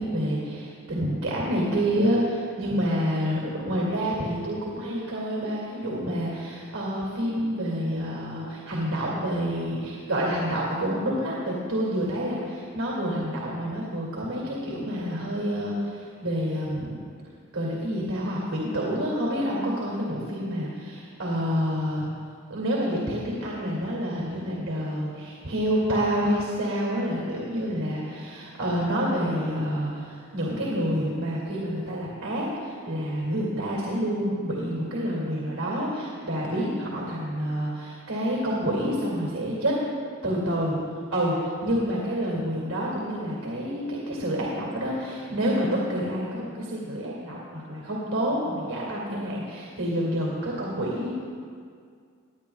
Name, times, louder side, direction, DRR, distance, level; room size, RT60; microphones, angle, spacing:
voice 1, 0.0-17.0 17.5-22.1 22.5-39.7 40.2-51.1, equal, 90° right, -4 dB, 2.4 m, -28 dB
21.5 x 9.6 x 2.4 m, 2.2 s
head